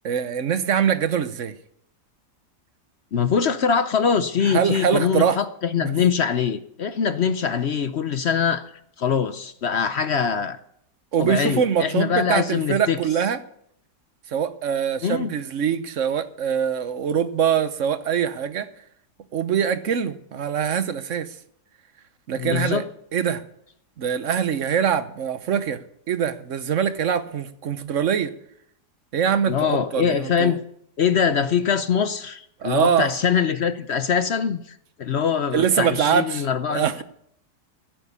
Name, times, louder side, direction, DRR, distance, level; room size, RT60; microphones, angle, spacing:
voice 1, 0.0-1.5 4.4-5.4 5.8-5.9 11.1-13.4 14.3-18.7 19.3-21.4 22.3-22.8 23.1-23.4 24.0-25.8 26.1-28.3 29.1-30.5 32.6-33.1 35.5-36.4 36.7-37.0, right 8 dB, 55° right, 1.1 m, -23 dB
voice 2, 3.1-8.7 9.0-10.6 11.2-13.0 15.0-15.3 22.4-22.8 29.5-30.6 31.0-36.8, left 7 dB, 55° left, 0.7 m, -23 dB
16.0 x 9.4 x 6.9 m
omnidirectional pair, 1.7 m